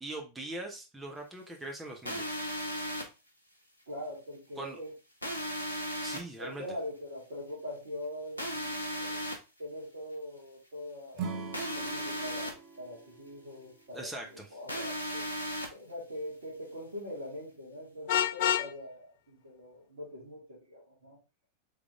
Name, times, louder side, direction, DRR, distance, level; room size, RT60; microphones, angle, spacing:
voice 1, 0.0-2.4 4.6-4.8 6.0-6.6 13.9-14.5, right 2 dB, 10° right, 1 dB, 0.9 m, -41 dB
sound 1, 2.1-3.0 5.2-6.2 8.4-9.4 11.5-12.5 14.7-15.7, equal, 85° left, 0.9 m, -35 dB
voice 2, 3.9-4.9 6.4-9.3 9.6-15.2 15.7-21.2, left 1 dB, 65° right, -6 dB, 1.9 m, -43 dB
Acoustic guitar / Strum, 11.1-14.4, right 5 dB, 40° right, 0.7 m, -42 dB
Vehicle horn car horn honking, 18.1-18.7, left 10 dB, 50° left, 0.4 m, -27 dB
3.7 x 3.3 x 3.5 m, 0.28 s
figure-of-eight pair, 90°, 0 cm